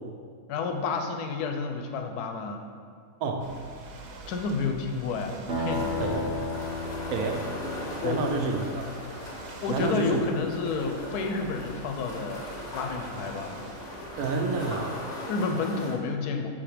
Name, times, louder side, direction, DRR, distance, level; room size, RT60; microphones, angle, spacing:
voice 1, 0.5-2.6 4.3-6.0 8.0-8.4 9.6-12.5 12.7-13.7 15.3-16.5, left 4 dB, 75° left, 5 dB, 1.1 m, -30 dB
Ocean / Boat Water vehicle, 3.4-14.7, right 3 dB, 90° right, 1.3 m, -46 dB
sound 1, 5.5-9.3, left 2 dB, 40° right, 0.8 m, -34 dB
sound 2, 5.7-16.0, left 1 dB, 35° left, 0.8 m, -40 dB
voice 2, 6.0-6.3 7.1-7.4 8.0-8.9 9.7-10.2 14.2-15.1, right 4 dB, 75° right, 3 dB, 1.0 m, -29 dB
7.1 x 2.8 x 5.0 m, 2.1 s
omnidirectional pair, 1.7 m